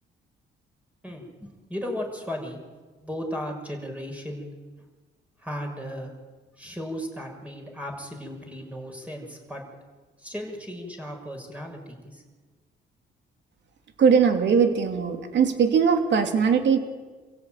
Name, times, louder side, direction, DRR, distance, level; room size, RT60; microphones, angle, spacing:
voice 1, 1.0-2.6 3.0-4.5 5.4-6.1 6.6-9.6 10.2-12.2, equal, 5° right, 1 dB, 6.4 m, -35 dB
voice 2, 14.0-16.8, right 6 dB, 65° right, 5 dB, 3.1 m, -20 dB
27.5 x 16.0 x 9.2 m, 1.4 s
cardioid pair, 90°, 20 cm